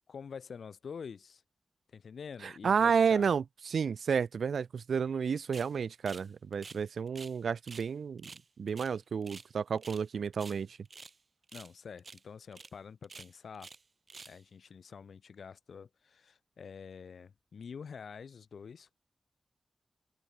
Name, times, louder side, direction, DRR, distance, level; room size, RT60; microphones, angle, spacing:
voice 1, 0.0-1.4 1.9-3.3 11.5-13.7 14.3-19.0, left 6 dB, 75° left, 0.9 m, -47 dB
voice 2, 2.4-8.3 8.6-10.8, right 6 dB, 80° right, 0.7 m, -31 dB
sound 1, 5.5-5.7 6.1-7.4 7.7-7.9 8.2-9.5 9.8-10.1 10.3-11.2 11.5-11.7 12.0-12.2 12.5-12.7 13.0-13.8 14.1-14.4, right 4 dB, 45° right, 1.1 m, -49 dB
open air
wide cardioid pair, 130°, 0 cm